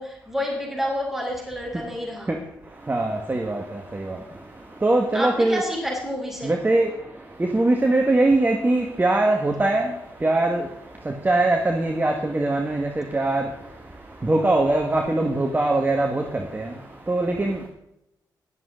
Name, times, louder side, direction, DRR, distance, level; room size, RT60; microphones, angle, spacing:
voice 1, 0.0-2.4 5.1-6.6, equal, 5° right, -2 dB, 6.4 m, -29 dB
voice 2, 2.7-5.6 6.4-17.7, right 2 dB, 25° right, 3 dB, 1.8 m, -23 dB
22.5 x 7.8 x 3.9 m, 0.82 s
cardioid pair, 65°, 8 cm